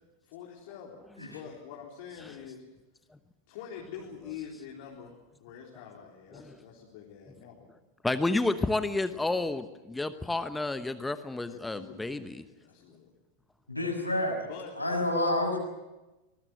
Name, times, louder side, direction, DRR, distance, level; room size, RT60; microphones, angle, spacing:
voice 1, 0.2-1.0 1.2-2.6 3.5-5.1 5.4-7.7 8.8-9.4 11.5-13.1 14.5-14.7, left 8 dB, 50° left, -1 dB, 3.9 m, -45 dB
voice 2, 8.0-12.4, left 2 dB, 5° left, 11 dB, 1.0 m, -30 dB
voice 3, 13.7-14.4 14.8-15.6, left 1 dB, 85° left, 2 dB, 6.2 m, -28 dB
25.0 x 20.5 x 7.9 m, 1.1 s
figure-of-eight pair, 90°, 0 cm